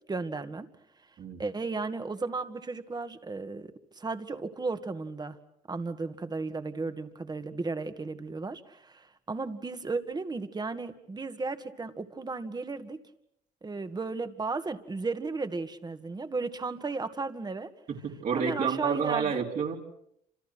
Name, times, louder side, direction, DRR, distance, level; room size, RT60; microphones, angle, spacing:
voice 1, 0.1-0.7 1.4-5.4 5.7-13.0 13.6-17.7 18.3-19.4, right 3 dB, 25° right, 10 dB, 2.2 m, -35 dB
voice 2, 17.9-19.8, right 6 dB, 55° right, -1 dB, 4.3 m, -29 dB
29.0 x 27.5 x 6.3 m, 0.74 s
cardioid pair, 100°, 17 cm